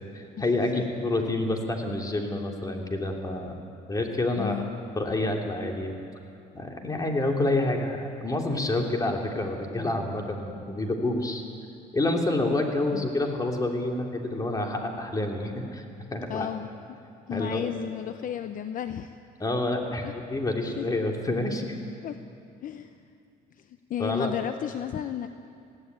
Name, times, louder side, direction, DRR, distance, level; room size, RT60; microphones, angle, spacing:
voice 1, 0.1-3.5 3.9-4.6 5.0-5.9 6.5-11.4 11.9-15.8 16.1-16.5 17.3-17.7 19.4-21.8 24.0-24.3, left 2 dB, 20° left, 2 dB, 3.0 m, -28 dB
voice 2, 4.4-4.7 12.9-13.1 16.3-16.7 17.3-19.2 20.0-20.1 20.8-20.9 22.0-22.2 22.6-23.0 23.5-25.3, left 9 dB, 55° left, 9 dB, 0.7 m, -33 dB
20.5 x 16.0 x 9.4 m, 2.5 s
cardioid pair, 110°, 17 cm